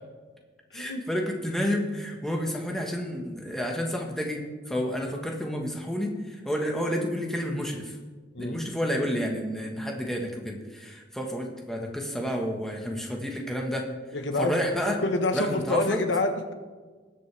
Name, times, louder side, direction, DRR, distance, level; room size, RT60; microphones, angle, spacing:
voice 1, 0.7-4.4 4.7-7.9 8.4-13.9 14.4-15.0 15.3-16.0, equal, ahead, 0 dB, 1.4 m, -30 dB
voice 2, 14.1-14.6 15.0-16.5, left 2 dB, 70° left, 6 dB, 1.2 m, -27 dB
20.0 x 7.9 x 3.4 m, 1.4 s
head